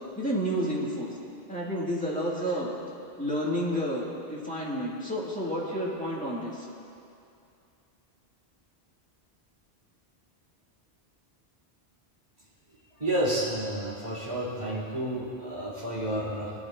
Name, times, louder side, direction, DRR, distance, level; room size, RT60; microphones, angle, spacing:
voice 1, 0.2-1.1 1.5-2.7 3.2-6.7, equal, 5° left, -7 dB, 2.3 m, -30 dB
voice 2, 13.0-16.5, right 1 dB, 35° right, -10 dB, 3.5 m, -30 dB
20.5 x 10.5 x 2.7 m, 2.6 s
omnidirectional pair, 1.1 m